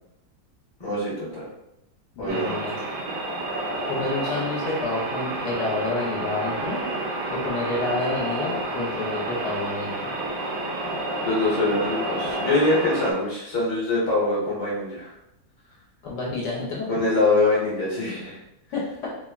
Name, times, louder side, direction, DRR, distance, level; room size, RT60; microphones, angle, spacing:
voice 1, 0.8-1.5 2.2-2.6 11.2-15.1 16.9-18.4, left 2 dB, 20° left, -8 dB, 0.7 m, -24 dB
voice 2, 2.2-2.8 3.9-6.8 7.3-10.0 16.0-17.0 18.7-19.1, left 3 dB, 70° left, -4 dB, 1.2 m, -29 dB
sound 1, 2.3-13.1, right 2 dB, 70° right, 1.2 m, -30 dB
3.3 x 2.1 x 2.4 m, 0.83 s
omnidirectional pair, 2.0 m